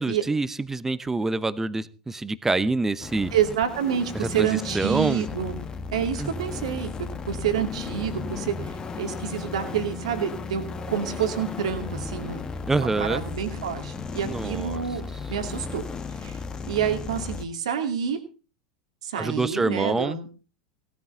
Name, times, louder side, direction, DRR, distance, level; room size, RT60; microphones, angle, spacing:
voice 1, 0.0-3.3 4.1-5.2 6.2-6.3 12.7-13.2 14.2-14.8 15.1-15.2 19.2-20.2, right 3 dB, 10° right, 16 dB, 0.9 m, -26 dB
sound 1, 3.0-17.4, left 4 dB, 20° left, 1.4 m, -35 dB
voice 2, 3.3-5.6 5.9-6.9 7.3-10.6 10.9-12.4 12.8-15.0 15.3-15.8 16.2-16.4 16.7-18.2 19.0-20.3, right 8 dB, 65° right, 6 dB, 2.5 m, -28 dB
17.5 x 12.5 x 3.9 m, 0.35 s
figure-of-eight pair, 85°, 4 cm